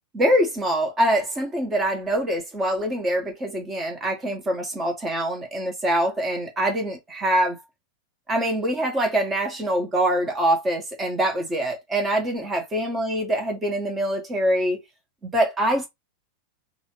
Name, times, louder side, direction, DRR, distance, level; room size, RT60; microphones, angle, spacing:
voice 1, 0.1-7.6 8.3-14.8 15.3-15.9, right 1 dB, 20° right, 1.7 m, -24 dB
4.0 x 2.9 x 3.1 m
figure-of-eight pair, 90°, 0 cm